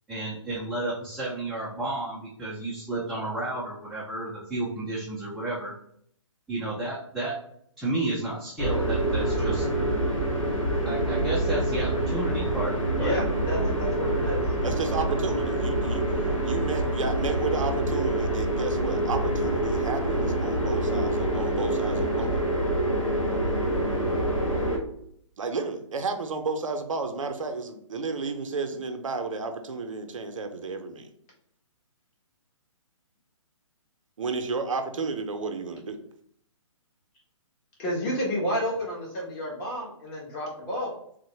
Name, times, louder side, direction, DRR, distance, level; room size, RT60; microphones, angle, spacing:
voice 1, 0.1-5.7 6.5-7.4 7.8-9.7 10.8-13.2, right 2 dB, ahead, -9 dB, 0.3 m, -32 dB
sound 1, 8.6-24.8, right 1 dB, 85° left, 1.1 m, -26 dB
voice 2, 13.0-14.4 37.8-40.9, left 1 dB, 30° left, -2 dB, 1.1 m, -30 dB
voice 3, 14.6-16.1 16.4-22.4 25.4-31.1 34.2-36.0, right 4 dB, 75° right, 6 dB, 0.5 m, -32 dB
3.4 x 2.1 x 3.1 m, 0.67 s
hypercardioid pair, 135°, 17 cm